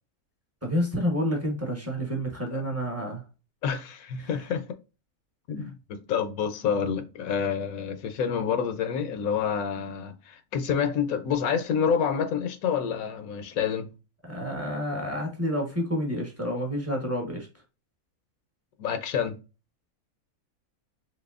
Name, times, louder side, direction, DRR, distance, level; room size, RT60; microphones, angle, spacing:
voice 1, 0.6-3.2 4.2-4.3 14.2-17.5, equal, 10° right, 0.8 m, -29 dB
voice 2, 3.6-4.7 5.5-13.9 18.8-19.3, left 7 dB, 75° left, 1.0 m, -28 dB
4.0 x 3.0 x 2.4 m
omnidirectional pair, 1.6 m